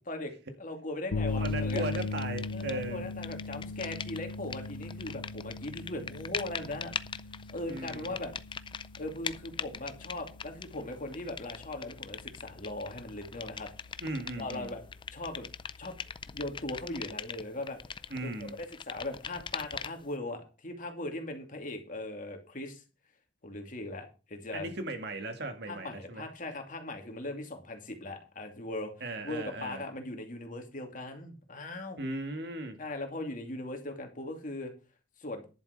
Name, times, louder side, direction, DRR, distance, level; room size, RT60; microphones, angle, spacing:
voice 1, 0.6-1.8 2.5-6.9 7.5-8.3 9.0-13.7 14.4-14.8 15.1-15.5 15.8-15.9 16.3-17.8 18.2-22.8 23.4-24.7 25.7-28.9 29.2-32.0 32.8-34.7 35.2-35.4, left 2 dB, 45° left, 2.6 m, -39 dB
sound 1, 1.1-17.0, left 3 dB, 80° left, 0.5 m, -40 dB
voice 2, 1.4-3.1 7.7-8.2 14.0-14.7 18.1-18.6 24.5-26.3 29.0-29.8 32.0-32.8, right 2 dB, 60° right, 1.9 m, -37 dB
sound 2, 1.5-2.9 3.1-20.1, left 6 dB, 25° left, 0.4 m, -42 dB
11.0 x 7.4 x 5.2 m
head